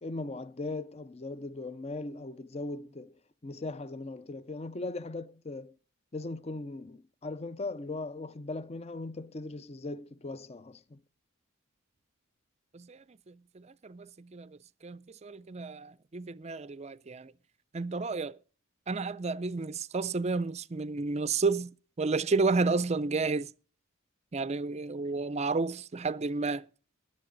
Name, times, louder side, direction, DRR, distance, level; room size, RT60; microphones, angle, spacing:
voice 1, 0.0-3.1 3.4-5.7 6.1-11.0, left 2 dB, 30° left, 0.5 m, -39 dB
voice 2, 12.7-17.3 17.7-18.4 18.9-21.7 22.0-23.5 24.3-26.7, right 3 dB, 30° right, 0.5 m, -31 dB
20.0 x 7.5 x 3.9 m
head